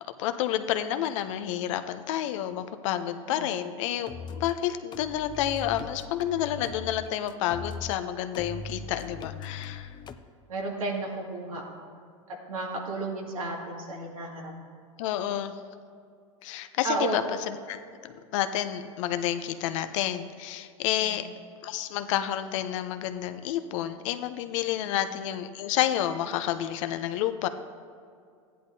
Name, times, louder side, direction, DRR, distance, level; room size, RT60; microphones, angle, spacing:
voice 1, 0.2-9.9 15.0-15.5 16.4-21.3 21.6-27.5, left 11 dB, 65° left, 10 dB, 0.7 m, -30 dB
sound 1, 4.1-4.5 4.9-8.0 8.3-10.2, left 5 dB, 25° left, 0.5 m, -40 dB
voice 2, 10.5-11.6 12.3-14.5 16.8-17.2 21.0-21.2 24.9-25.0, right 2 dB, 90° right, -2 dB, 2.2 m, -33 dB
14.5 x 10.0 x 2.7 m, 2.3 s
hypercardioid pair, 110°, 17 cm